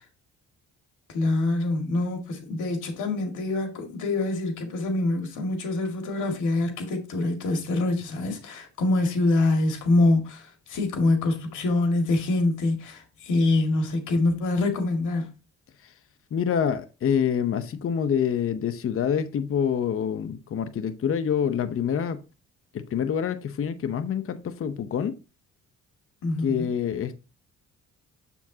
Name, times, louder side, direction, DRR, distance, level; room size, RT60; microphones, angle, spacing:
voice 1, 1.1-15.3 26.2-26.7, left 2 dB, 80° left, 2.1 m, -25 dB
voice 2, 16.3-22.2 22.7-25.1 26.4-27.2, left 8 dB, 45° left, 0.8 m, -26 dB
7.2 x 7.1 x 2.8 m
cardioid pair, 90°, 30 cm